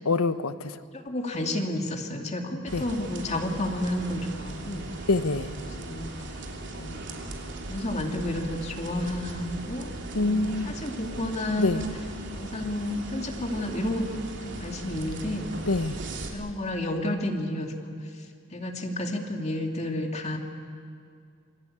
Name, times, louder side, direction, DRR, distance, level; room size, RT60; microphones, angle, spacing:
voice 1, 0.1-0.8 2.7-2.8 5.1-5.5 10.1-10.7 11.6-11.8 15.7-16.0, left 3 dB, 85° left, 12 dB, 1.0 m, -25 dB
voice 2, 0.9-4.9 5.6-6.1 6.7-7.1 7.7-11.9 12.3-14.1 14.4-15.5 16.3-17.9 18.5-20.4, left 1 dB, 30° left, 3 dB, 2.5 m, -31 dB
sound 1, 2.7-16.3, right 2 dB, 55° right, 3.2 m, -38 dB
27.5 x 21.0 x 8.8 m, 2.2 s
head